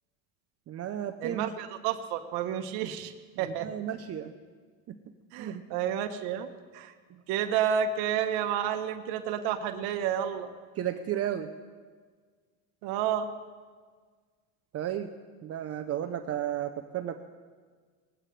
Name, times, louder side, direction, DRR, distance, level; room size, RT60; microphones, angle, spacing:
voice 1, 0.7-1.5 3.4-4.3 4.9-5.0 5.4-5.7 7.1-7.2 10.8-11.5 14.7-15.1 15.4-17.2, right 10 dB, 35° right, 7 dB, 0.7 m, -33 dB
voice 2, 1.2-3.1 3.4-3.7 5.3-6.5 6.7-6.9 7.3-10.5 12.8-13.3, right 9 dB, 65° right, 8 dB, 1.2 m, -30 dB
19.0 x 15.5 x 3.3 m, 1.5 s
supercardioid pair, 115°, 41 cm